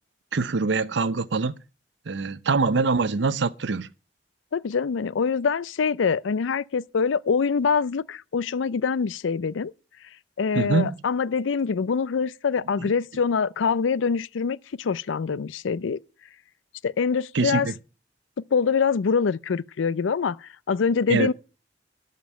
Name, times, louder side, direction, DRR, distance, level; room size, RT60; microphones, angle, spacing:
voice 1, 0.3-1.6 2.1-3.9 10.5-10.9 12.8-12.9 17.3-17.7 21.1-21.3, right 4 dB, 65° right, 0.6 m, -24 dB
voice 2, 4.5-9.7 10.4-16.0 16.8-17.7 18.5-21.3, left 5 dB, 80° left, 0.4 m, -24 dB
12.5 x 5.2 x 7.3 m
head